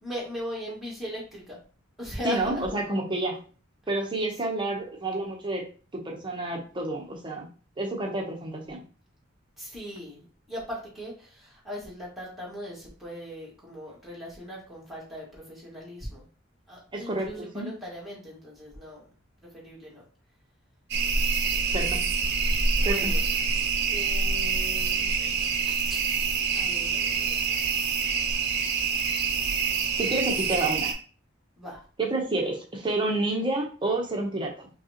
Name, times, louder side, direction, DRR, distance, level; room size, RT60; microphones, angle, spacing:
voice 1, 0.0-1.6 2.0-2.8 9.6-16.2 16.7-19.0 19.5-20.0 22.8-23.2 23.9-25.1 25.9-26.0 26.6-27.5 27.8-27.9 31.6-31.8, equal, ahead, -6 dB, 1.9 m, -39 dB
voice 2, 2.2-3.4 3.9-5.6 5.9-7.5 7.8-8.8 16.9-17.7 21.7-22.1 22.8-23.1 30.0-30.9 32.0-34.7, right 2 dB, 25° right, 0 dB, 0.9 m, -29 dB
sound 1, 20.9-30.9, right 5 dB, 60° right, 0.7 m, -26 dB
5.4 x 2.4 x 3.0 m, 0.38 s
head